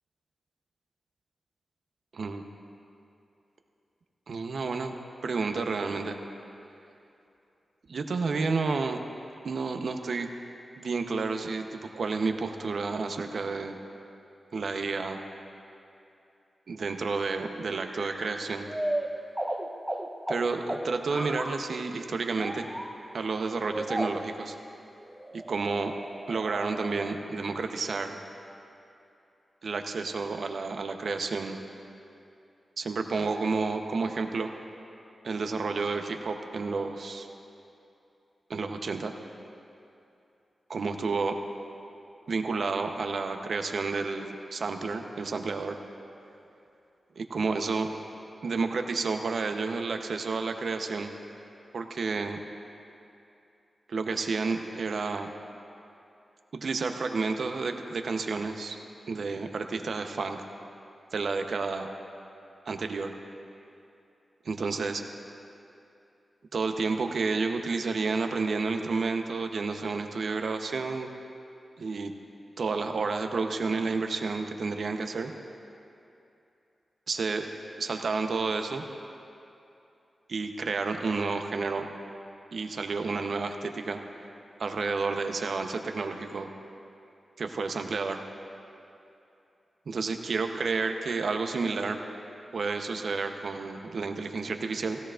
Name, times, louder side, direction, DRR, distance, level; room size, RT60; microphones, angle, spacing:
voice 1, 4.3-4.9 5.2-6.2 7.9-9.0 9.4-10.3 10.8-13.8 14.5-15.2 16.7-18.7 20.3-22.6 23.1-24.6 25.3-25.9 26.3-28.1 29.6-31.6 32.8-34.5 35.2-37.3 38.5-39.1 40.7-41.4 42.3-45.8 47.2-47.9 48.4-51.1 51.7-52.4 53.9-55.3 56.5-58.8 59.1-60.4 61.1-61.9 62.6-63.1 64.5-65.0 66.5-71.1 71.8-72.1 72.6-75.3 77.1-77.5 77.8-78.8 80.3-81.9 82.5-84.0 84.6-86.5 87.4-88.2 89.9-92.0 92.5-95.0, right 4 dB, 70° right, 5 dB, 0.8 m, -30 dB
sound 1, 17.9-21.7 22.3-23.0 23.3-23.4 23.7-24.4 25.0-27.2, right 1 dB, 5° right, 1.1 m, -35 dB
16.5 x 16.0 x 2.5 m, 2.8 s
cardioid pair, 45°, 0 cm